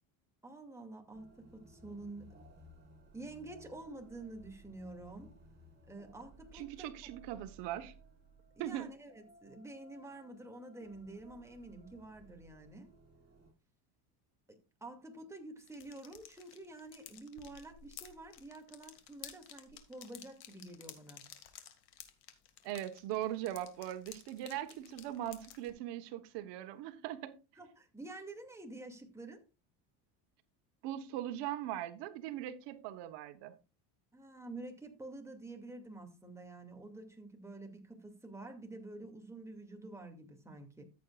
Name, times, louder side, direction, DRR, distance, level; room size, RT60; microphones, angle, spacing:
voice 1, 0.4-2.3 3.1-5.3 5.9-7.1 8.6-12.9 14.5-21.2 27.6-29.4 34.1-40.8, right 2 dB, 5° right, 2.3 m, -49 dB
sound 1, 1.1-13.5, right 1 dB, 25° right, 5.3 m, -59 dB
voice 2, 6.5-7.9 8.6-8.9 22.6-27.3 30.8-33.5, right 12 dB, 70° right, 1.3 m, -40 dB
sound 2, 15.6-25.7, left 10 dB, 60° left, 2.1 m, -54 dB
14.0 x 8.3 x 2.4 m
cardioid pair, 120°, 43 cm